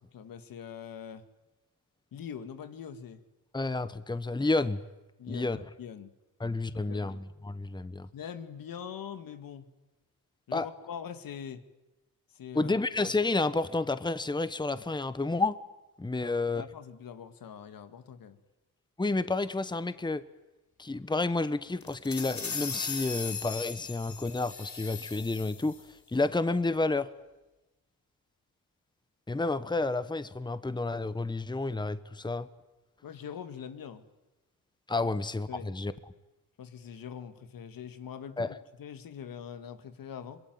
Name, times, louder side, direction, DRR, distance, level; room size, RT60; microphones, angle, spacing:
voice 1, 0.1-1.2 2.1-3.2 5.2-6.1 6.7-7.2 8.1-9.7 10.5-11.6 12.3-12.7 16.1-18.4 33.0-34.0 35.5-35.7 36.6-40.4, left 8 dB, 75° left, 9 dB, 2.0 m, -43 dB
voice 2, 3.5-4.8 5.3-5.7 6.4-8.1 10.5-10.7 12.5-15.6 16.0-16.6 19.0-20.2 20.8-27.1 29.3-32.5 34.9-35.9 38.4-38.6, left 3 dB, 15° left, 14 dB, 1.1 m, -30 dB
sound 1, 21.8-25.8, left 6 dB, 55° left, 3.8 m, -38 dB
24.5 x 21.5 x 9.5 m, 1.0 s
cardioid pair, 70°, 35 cm